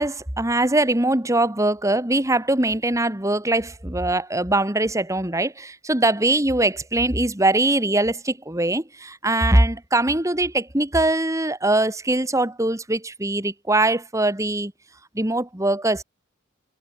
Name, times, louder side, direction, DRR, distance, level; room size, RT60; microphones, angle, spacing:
voice 1, 0.0-14.7 15.1-16.0, right 2 dB, 15° right, 1.8 m, -22 dB
head